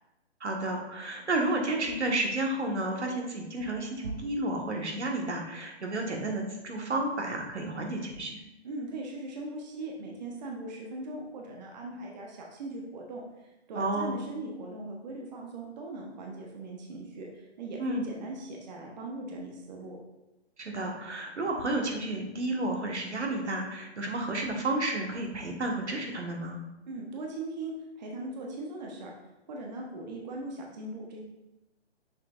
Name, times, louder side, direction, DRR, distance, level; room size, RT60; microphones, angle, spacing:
voice 1, 0.4-8.4 13.7-14.2 17.8-18.0 20.6-26.5, right 2 dB, 75° right, 1 dB, 1.5 m, -31 dB
voice 2, 8.6-20.0 26.9-29.1 29.5-31.2, right 2 dB, 40° right, -1 dB, 1.1 m, -40 dB
7.1 x 6.5 x 2.5 m, 0.98 s
figure-of-eight pair, 140°, 34 cm